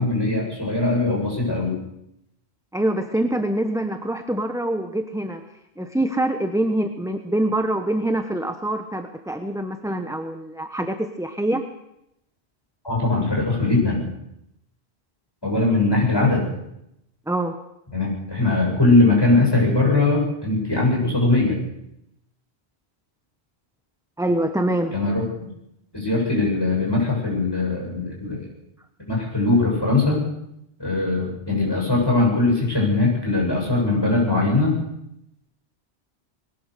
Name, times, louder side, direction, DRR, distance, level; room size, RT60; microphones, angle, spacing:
voice 1, 0.0-1.7 12.8-14.0 15.4-16.4 17.9-21.6 24.9-25.2 25.9-28.5 29.1-30.2 30.8-34.8, left 2 dB, 20° left, -2 dB, 7.9 m, -20 dB
voice 2, 2.7-5.4 5.8-11.6 17.3-17.6 24.2-25.0, right 1 dB, 5° right, 6 dB, 1.0 m, -25 dB
21.0 x 19.0 x 6.8 m, 0.82 s
omnidirectional pair, 1.1 m